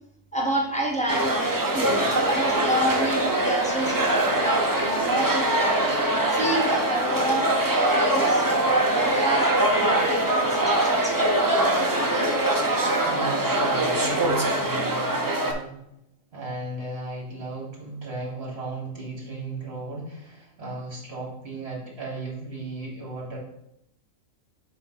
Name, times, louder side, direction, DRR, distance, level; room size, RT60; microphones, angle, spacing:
voice 1, 0.3-1.3 1.7-5.8 6.3-8.4 8.8-11.6, right 1 dB, 5° left, -1 dB, 1.1 m, -29 dB
sound 1, 1.1-15.5, right 1 dB, 25° right, 0.5 m, -23 dB
sound 2, 2.9-12.8, left 7 dB, 80° left, 1.0 m, -41 dB
voice 2, 13.1-15.8 16.3-23.4, right 3 dB, 50° right, -3 dB, 2.3 m, -35 dB
7.2 x 2.6 x 5.7 m, 0.79 s
omnidirectional pair, 1.4 m